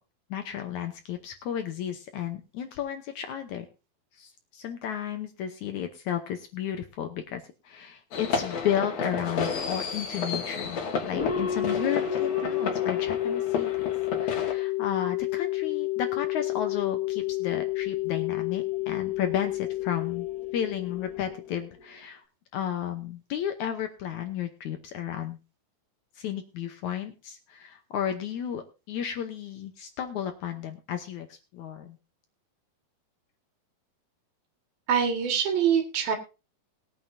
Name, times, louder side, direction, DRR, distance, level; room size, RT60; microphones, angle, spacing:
voice 1, 0.3-3.7 4.1-13.7 14.2-20.3 20.5-22.2 22.5-25.4 26.2-32.0, left 9 dB, 70° left, 7 dB, 1.9 m, -33 dB
sound 1, 8.1-14.5, left 5 dB, 55° left, 2.5 m, -32 dB
sound 2, 11.1-21.8, left 12 dB, 30° left, 2.0 m, -30 dB
voice 2, 34.9-36.2, right 7 dB, 75° right, 3 dB, 3.7 m, -24 dB
20.0 x 9.2 x 2.7 m, 0.30 s
omnidirectional pair, 4.3 m